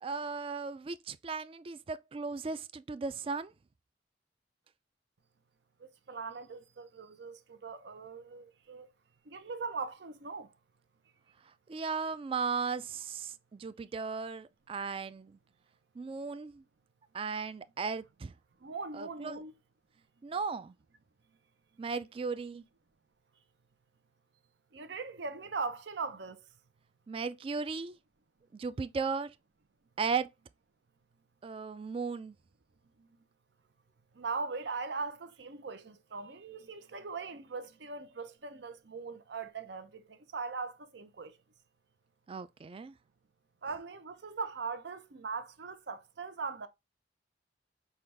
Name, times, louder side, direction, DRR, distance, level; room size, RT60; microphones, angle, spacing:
voice 1, 0.0-3.5 11.7-15.4 16.0-16.6 17.1-18.3 18.9-19.4 20.2-20.7 21.8-22.6 27.1-28.0 28.5-29.3 30.0-30.3 31.4-32.4 42.3-42.9, right 5 dB, 30° right, 0.3 m, -36 dB
voice 2, 5.8-8.9 9.3-10.5 18.6-19.5 24.7-26.4 33.0-33.1 34.1-41.4 43.6-46.7, right 4 dB, 70° right, 0.6 m, -40 dB
5.7 x 2.3 x 3.2 m
head